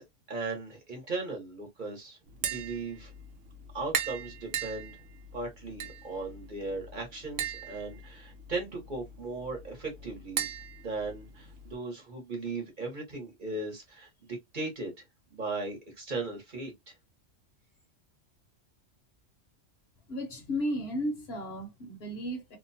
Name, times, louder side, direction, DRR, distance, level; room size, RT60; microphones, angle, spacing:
voice 1, 0.3-3.1 3.7-5.0 5.3-10.5 10.8-14.9 15.3-16.9, right 3 dB, 40° right, 1.1 m, -37 dB
Tap, 2.3-11.7, right 7 dB, 80° right, 0.9 m, -39 dB
voice 2, 20.1-22.6, equal, 60° left, 0.9 m, -34 dB
2.6 x 2.1 x 2.6 m
omnidirectional pair, 1.3 m